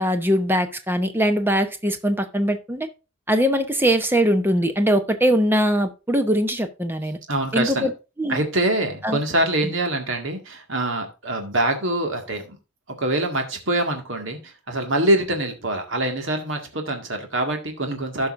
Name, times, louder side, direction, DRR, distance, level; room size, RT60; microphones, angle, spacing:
voice 1, 0.0-2.9 3.3-7.2 7.5-7.9 8.2-8.4 9.0-9.2, equal, 10° right, 7 dB, 0.8 m, -21 dB
voice 2, 7.3-7.9 8.3-12.6 12.9-18.3, right 1 dB, 60° right, 4 dB, 1.9 m, -24 dB
15.5 x 5.5 x 2.6 m, 0.29 s
head